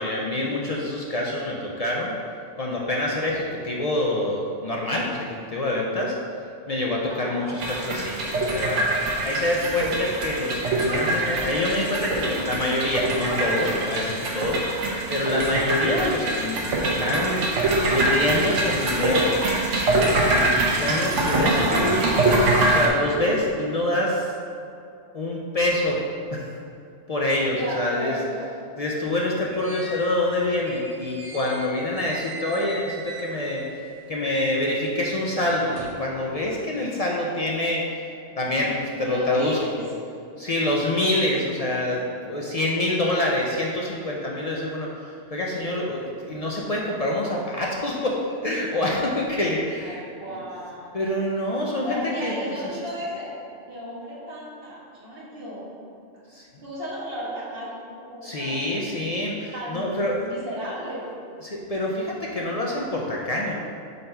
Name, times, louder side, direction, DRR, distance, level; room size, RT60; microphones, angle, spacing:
voice 1, 0.0-2.1 2.6-6.1 6.7-8.9 9.2-17.5 17.9-19.3 20.3-22.1 22.6-24.3 25.1-26.0 26.3-26.5 27.1-28.2 28.8-38.0 38.4-38.7 39.0-39.9 40.4-50.0 50.9-52.3 56.3-56.5 58.2-60.2 61.4-63.5, left 1 dB, 55° left, -3 dB, 0.4 m, -26 dB
voice 2, 7.1-7.5 27.5-28.5 38.6-39.8 45.5-45.9 49.8-51.0 51.8-53.3 53.7-55.7 56.6-58.7 59.5-61.1, equal, 50° right, -8 dB, 1.8 m, -34 dB
sound 1, 7.6-22.9, right 2 dB, 85° right, 1.1 m, -24 dB
sound 2, 29.1-33.8 34.1-36.1, right 1 dB, 35° right, 0.7 m, -40 dB
4.4 x 4.0 x 5.3 m, 2.5 s
omnidirectional pair, 1.2 m